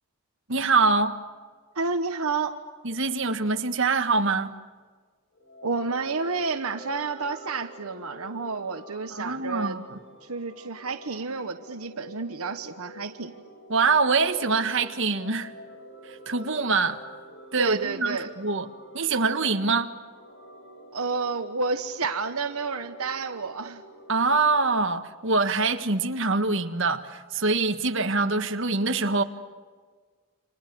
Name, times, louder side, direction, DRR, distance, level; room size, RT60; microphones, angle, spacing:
voice 1, 0.5-1.2 2.8-4.5 9.1-10.0 13.7-15.5 16.1-17.0 17.5-18.7 18.9-19.9 24.1-29.2, right 4 dB, 55° right, 1.6 m, -24 dB
voice 2, 1.7-2.6 5.6-9.8 10.2-13.3 17.6-18.3 20.9-23.8, right 4 dB, 80° right, 1.2 m, -30 dB
sound 1, 5.3-24.6, equal, 55° left, 4.8 m, -47 dB
30.0 x 27.0 x 7.0 m
head